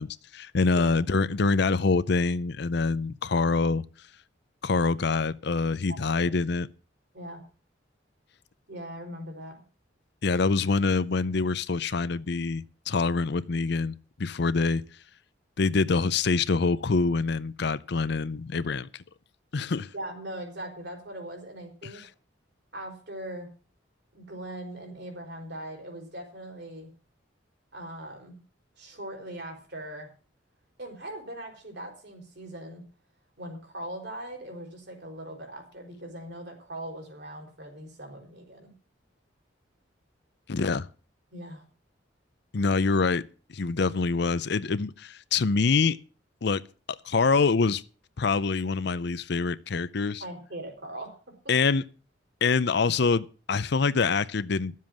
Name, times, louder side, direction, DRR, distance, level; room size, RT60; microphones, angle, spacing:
voice 1, 0.0-3.8 4.6-6.7 10.2-14.8 15.6-18.9 19.5-19.9 40.5-40.9 42.5-43.2 43.5-46.0 46.4-46.6 47.0-47.8 48.2-50.2 51.5-51.8 52.4-54.7, left 4 dB, 60° left, 0.6 m, -25 dB
voice 2, 5.9-6.3 7.1-7.4 8.7-9.6 19.9-22.1 22.7-23.5 24.1-26.9 27.7-28.4 28.8-30.1 30.8-32.8 33.4-38.7 41.3-41.6 50.2-51.1, right 1 dB, 60° right, 4.2 m, -40 dB
12.5 x 7.5 x 7.4 m
head